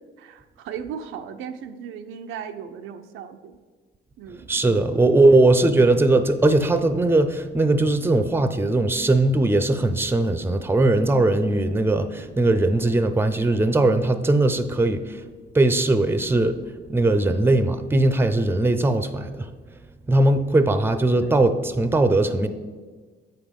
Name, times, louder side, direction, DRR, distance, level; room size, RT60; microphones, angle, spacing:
voice 1, 0.2-3.6 4.2-4.5 5.3-5.4 21.1-21.4, right 7 dB, 90° right, 7 dB, 0.6 m, -37 dB
voice 2, 4.5-15.2 15.5-16.6 16.9-19.5 20.1-22.5, right 2 dB, 10° right, 11 dB, 0.6 m, -19 dB
8.0 x 5.1 x 5.3 m, 1.4 s
cardioid pair, 90°, 20 cm